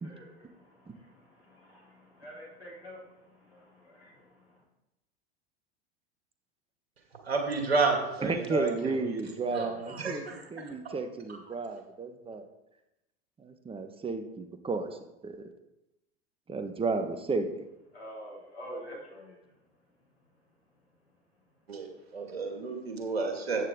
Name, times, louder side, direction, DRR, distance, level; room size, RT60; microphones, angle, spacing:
voice 1, 0.0-4.6 17.9-19.4, equal, 85° left, -3 dB, 3.9 m, -47 dB
voice 2, 7.2-9.2 9.5-10.4 21.7-23.7, right 4 dB, 80° right, 3 dB, 2.4 m, -31 dB
voice 3, 8.2-10.2 10.5-12.5 13.4-15.0 15.2-15.5 16.5-17.6, right 3 dB, 20° right, 7 dB, 1.4 m, -33 dB
13.5 x 9.2 x 3.9 m, 0.92 s
figure-of-eight pair, 80°, 31 cm